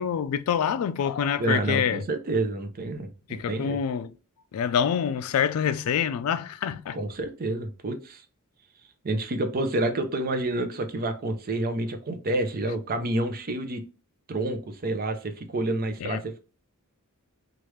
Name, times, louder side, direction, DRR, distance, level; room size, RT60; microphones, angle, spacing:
voice 1, 0.0-2.0 3.3-4.1 4.5-7.0 16.0-16.2, left 8 dB, 80° left, 0.3 m, -26 dB
voice 2, 1.4-3.8 6.9-8.2 9.0-13.8 14.3-16.4, right 2 dB, 45° right, 0.5 m, -29 dB
3.2 x 2.4 x 3.0 m
head